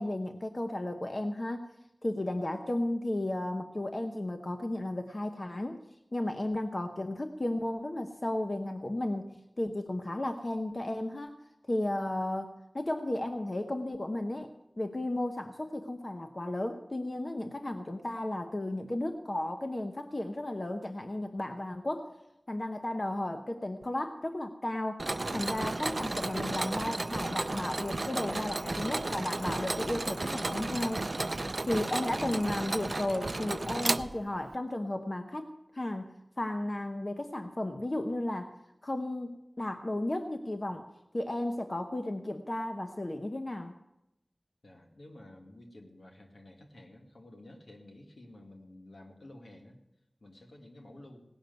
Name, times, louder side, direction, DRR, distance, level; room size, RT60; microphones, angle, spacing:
voice 1, 0.0-1.7 2.0-5.8 6.1-11.4 11.7-14.5 14.8-22.1 22.5-31.1 31.7-36.1 36.4-38.5 38.8-40.9 41.1-43.8, left 1 dB, 50° left, 6 dB, 0.9 m, -34 dB
Mechanisms, 25.0-34.5, right 2 dB, 60° right, 0.4 m, -33 dB
voice 2, 44.6-49.8 50.2-51.2, left 1 dB, 85° left, 2 dB, 2.0 m, -52 dB
17.5 x 6.6 x 9.3 m, 0.87 s
wide cardioid pair, 45°, 0 cm